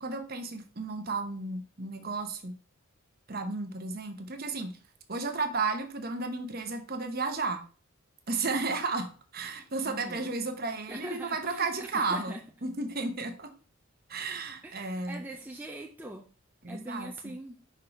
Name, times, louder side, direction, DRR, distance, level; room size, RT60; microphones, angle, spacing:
voice 1, 0.0-2.5 3.3-4.8 5.1-7.6 8.3-12.3 12.6-13.5 14.1-15.2 16.6-17.3, right 3 dB, 45° right, 6 dB, 0.9 m, -33 dB
voice 2, 9.9-10.3 10.9-12.4 14.6-16.3 16.7-17.6, right 1 dB, 10° right, 1 dB, 0.5 m, -42 dB
5.6 x 3.9 x 4.4 m, 0.38 s
head